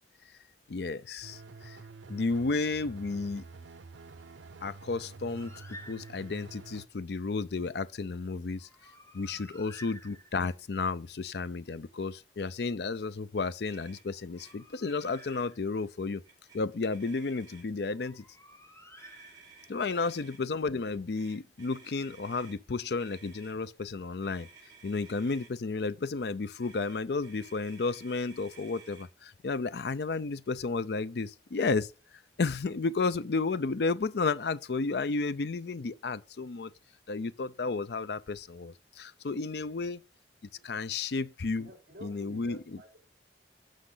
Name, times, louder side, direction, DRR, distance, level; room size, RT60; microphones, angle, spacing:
voice 1, 0.7-1.8 2.1-3.4 4.6-5.5 5.9-8.7 9.1-16.2 16.5-18.2 19.7-24.5 24.8-31.9 32.4-36.7 37.1-40.0 40.6-41.7 42.0-42.6, left 4 dB, 65° left, 0.5 m, -32 dB
sound 1, 1.2-6.9, right 3 dB, 85° right, 0.6 m, -48 dB
Bird, 5.4-6.5 8.6-10.7 14.1-16.0 17.9-19.8, equal, 15° left, 1.2 m, -53 dB
voice 2, 9.3-9.6 19.7-20.0 39.5-39.9 40.5-40.7 41.5-43.0, right 1 dB, 50° right, 3.6 m, -52 dB
Motor vehicle (road), 13.7-14.0 14.4-14.5 14.8-15.5 16.2-16.6 16.9-17.8 19.0-20.4 21.1-22.6 23.0-23.5 24.2-25.5 26.6-29.1, right 4 dB, 25° right, 4.5 m, -55 dB
11.5 x 6.5 x 3.9 m
head